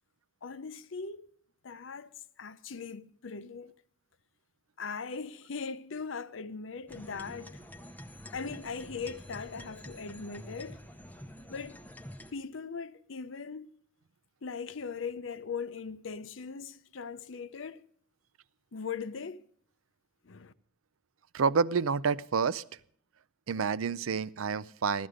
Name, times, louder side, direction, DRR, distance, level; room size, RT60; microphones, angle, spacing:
voice 1, 0.4-1.3 1.6-3.7 4.8-7.5 8.3-10.8 11.5-11.8 12.3-13.7 14.4-17.8 18.7-19.4 20.2-20.5, left 5 dB, 65° left, 0.6 m, -40 dB
sound 1, 6.9-12.3, equal, 10° left, 0.7 m, -47 dB
voice 2, 21.3-22.6 23.5-25.1, right 5 dB, 85° right, 0.5 m, -28 dB
15.5 x 12.5 x 5.0 m
head